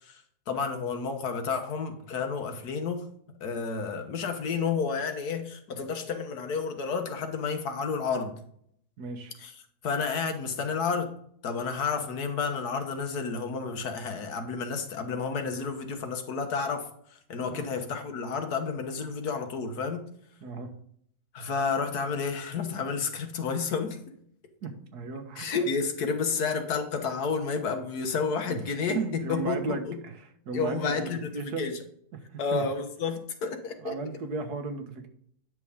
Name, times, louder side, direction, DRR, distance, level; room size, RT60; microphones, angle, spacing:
voice 1, 0.0-3.0 3.4-8.3 9.4-9.5 9.8-11.1 11.4-20.1 21.3-24.0 25.4-30.0 30.5-31.3 31.6-31.7 32.4-33.9, left 5 dB, 85° left, 6 dB, 1.7 m, -31 dB
voice 2, 9.0-9.3 17.5-17.6 20.4-20.7 24.6-25.5 28.5-28.6 28.9-31.7 32.1-32.6 33.8-35.1, right 3 dB, 85° right, 6 dB, 1.7 m, -35 dB
9.7 x 6.1 x 3.6 m, 0.66 s
omnidirectional pair, 1.6 m